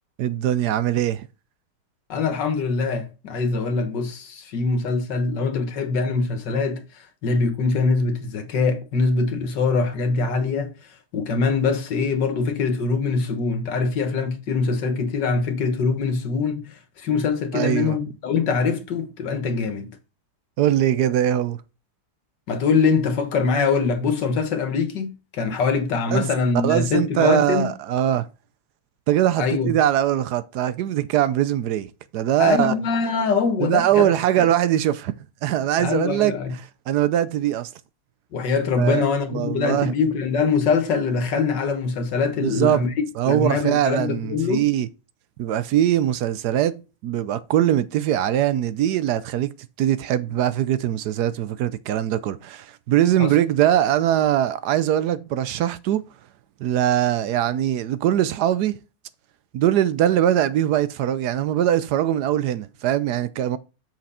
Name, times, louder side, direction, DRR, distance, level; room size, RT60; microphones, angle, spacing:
voice 1, 0.2-1.3 17.5-18.0 20.6-21.6 26.1-26.3 26.6-28.3 29.1-32.7 33.6-35.1 35.4-36.3 36.9-37.7 38.8-39.0 39.3-39.9 42.4-42.8 43.2-44.9 45.4-46.8 47.0-49.5 49.8-56.0 56.6-58.8 59.5-63.6, right 11 dB, 75° right, 1.1 m, -21 dB
voice 2, 2.1-6.8 7.2-10.7 11.1-19.9 22.5-27.7 29.4-29.7 32.4-34.1 34.4-34.5 35.8-36.5 38.3-44.7 53.2-53.3, left 4 dB, 80° left, 2.0 m, -23 dB
7.6 x 5.9 x 4.2 m
omnidirectional pair, 1.9 m